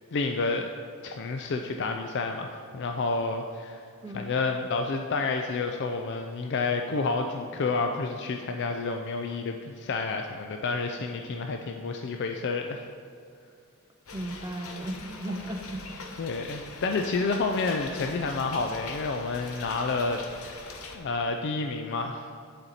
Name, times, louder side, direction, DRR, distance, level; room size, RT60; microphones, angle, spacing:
voice 1, 0.1-0.7 1.0-3.8 4.1-12.8 16.2-20.6 20.9-22.3, left 3 dB, 55° left, 4 dB, 0.4 m, -29 dB
voice 2, 4.0-4.4 14.1-15.9, right 1 dB, 20° right, 4 dB, 0.5 m, -36 dB
sound 1, 14.1-21.0, left 4 dB, 75° left, 0.8 m, -42 dB
10.5 x 4.3 x 4.1 m, 2.3 s
head